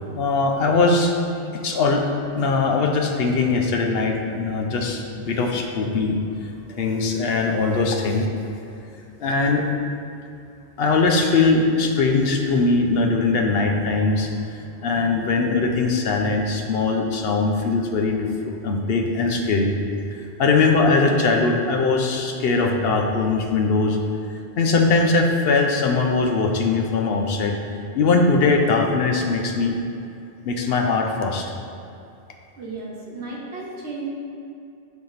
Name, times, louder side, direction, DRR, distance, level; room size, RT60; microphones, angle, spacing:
voice 1, 0.1-1.1 1.5-2.0 2.3-6.2 6.8-8.3 9.2-9.6 10.8-18.3 18.6-19.8 20.4-24.0 24.6-27.5 27.9-29.7 30.4-31.5, left 3 dB, 70° left, 3 dB, 0.9 m, -21 dB
voice 2, 32.6-34.0, right 3 dB, 85° right, -3 dB, 1.4 m, -34 dB
7.2 x 4.8 x 4.0 m, 2.6 s
omnidirectional pair, 1.1 m